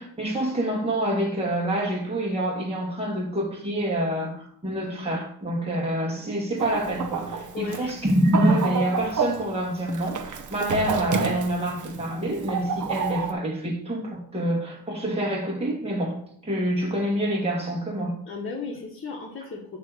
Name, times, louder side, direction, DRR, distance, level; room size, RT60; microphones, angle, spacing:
voice 1, 0.0-16.2 16.4-18.1, right 1 dB, 15° right, 2.0 m, -26 dB
Chicken rooster, 6.6-13.3, right 5 dB, 50° right, 1.0 m, -30 dB
voice 2, 7.5-8.0 18.2-19.8, left 4 dB, 35° left, 1.5 m, -35 dB
8.2 x 3.3 x 6.4 m
cardioid pair, 105°, 38 cm